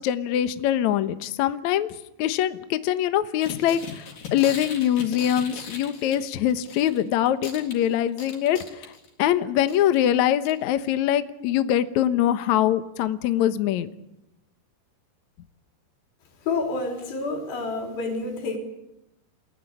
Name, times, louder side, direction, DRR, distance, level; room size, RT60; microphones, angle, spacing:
voice 1, 0.0-1.9 2.2-8.9 9.2-13.9, left 11 dB, 85° left, 11 dB, 1.6 m, -23 dB
sound 1, 3.4-7.0 7.3-9.2 9.7-10.0 10.4-10.5 10.8-10.9, left 5 dB, 50° left, 5.1 m, -38 dB
voice 2, 16.5-18.6, left 3 dB, 65° left, 4 dB, 5.9 m, -28 dB
29.0 x 16.5 x 9.9 m, 0.89 s
omnidirectional pair, 5.2 m